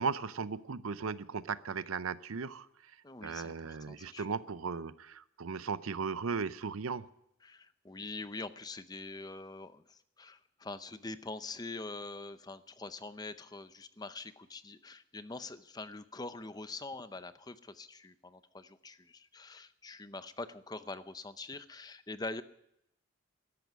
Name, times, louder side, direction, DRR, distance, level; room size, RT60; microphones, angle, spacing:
voice 1, 0.0-2.9 3.2-7.1, right 5 dB, 90° right, 16 dB, 0.6 m, -37 dB
voice 2, 3.0-4.3 7.4-22.4, left 3 dB, 20° left, 12 dB, 0.6 m, -44 dB
13.5 x 11.0 x 9.3 m, 0.81 s
head